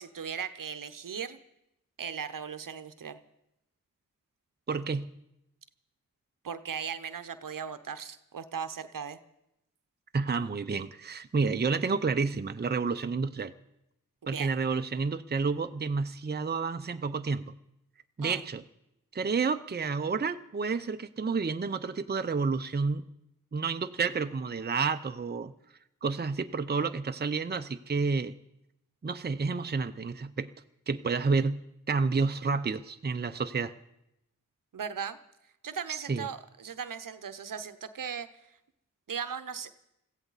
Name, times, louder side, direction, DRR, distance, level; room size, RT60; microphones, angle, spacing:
voice 1, 0.0-1.4 2.0-3.2 6.4-9.2 14.2-14.5 18.2-18.4 34.7-35.2 35.6-38.3 39.1-39.7, right 7 dB, 70° right, 11 dB, 0.9 m, -37 dB
voice 2, 4.7-5.1 10.1-13.5 14.3-17.5 18.2-18.6 19.1-23.1 23.5-25.5 26.0-28.3 29.0-30.5 30.9-31.6 31.9-33.7 35.9-36.3, right 4 dB, 30° right, 9 dB, 0.7 m, -30 dB
22.0 x 15.0 x 4.1 m, 0.84 s
cardioid pair, 45°, 34 cm